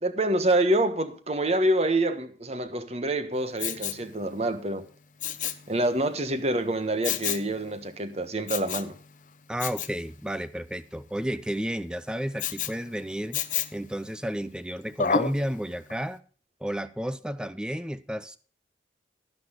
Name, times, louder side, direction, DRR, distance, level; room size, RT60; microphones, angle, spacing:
voice 1, 0.0-4.8 5.7-8.9, right 1 dB, 35° right, 1.3 m, -26 dB
Respiratory sounds, 3.6-4.1 5.2-5.7 7.0-7.5 8.5-8.9 9.6-9.9 12.4-12.8 13.3-13.8 15.0-15.4 15.9-16.0, left 7 dB, 45° left, 0.8 m, -29 dB
voice 2, 9.5-13.4 13.7-16.2 16.6-18.4, equal, 5° right, 0.4 m, -32 dB
12.0 x 10.5 x 3.8 m
head